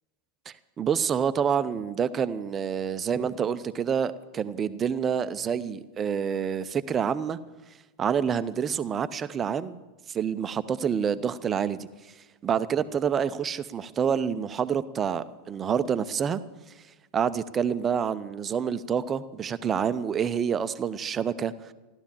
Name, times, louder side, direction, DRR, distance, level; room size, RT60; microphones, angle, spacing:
voice 1, 0.5-7.4 8.0-9.8 10.1-11.9 12.4-16.4 17.1-21.5, right 7 dB, 25° right, 14 dB, 0.7 m, -27 dB
15.0 x 12.5 x 7.3 m, 1.2 s
figure-of-eight pair, 85°, 0 cm